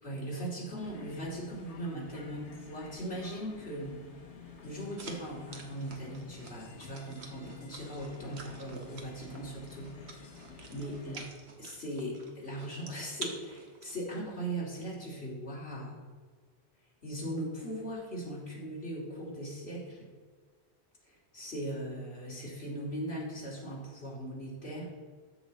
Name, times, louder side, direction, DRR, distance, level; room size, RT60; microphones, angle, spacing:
voice 1, 0.0-4.0 4.6-10.2 10.7-11.3 11.6-16.0 17.0-20.1 21.0-24.9, right 1 dB, 60° left, -5 dB, 3.4 m, -39 dB
sound 1, 0.8-11.3, left 4 dB, 75° left, 1.6 m, -51 dB
sound 2, 5.0-14.5, right 3 dB, 65° right, 1.5 m, -49 dB
14.0 x 6.3 x 4.1 m, 1.5 s
omnidirectional pair, 1.2 m